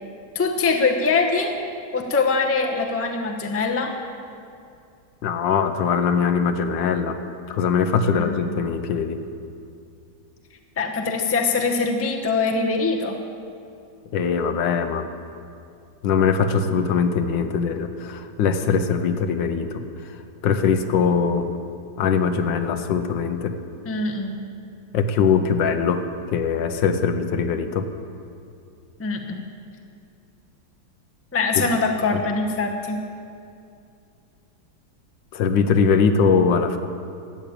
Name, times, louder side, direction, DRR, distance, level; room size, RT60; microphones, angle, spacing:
voice 1, 0.3-1.6 1.9-3.9 8.1-8.4 10.8-13.2 23.8-24.4 29.0-29.4 31.3-33.0, left 4 dB, 15° left, 2 dB, 0.6 m, -23 dB
voice 2, 5.2-7.2 7.5-9.2 14.1-15.1 16.0-20.1 20.4-21.5 22.0-23.6 24.9-27.9 31.5-31.7 35.3-36.8, left 6 dB, 75° left, 8 dB, 1.4 m, -21 dB
13.0 x 8.5 x 8.8 m, 2.5 s
omnidirectional pair, 2.1 m